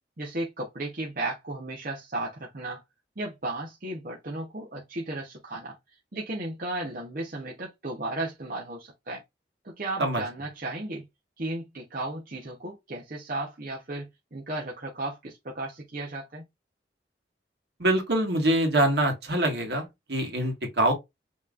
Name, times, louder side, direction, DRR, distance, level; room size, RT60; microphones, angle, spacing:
voice 1, 0.2-2.8 3.2-5.7 6.1-9.2 9.8-11.1 11.4-16.4, right 2 dB, 50° right, 0.9 m, -34 dB
voice 2, 17.8-20.9, right 1 dB, 70° right, 1.6 m, -24 dB
5.5 x 3.1 x 2.4 m
head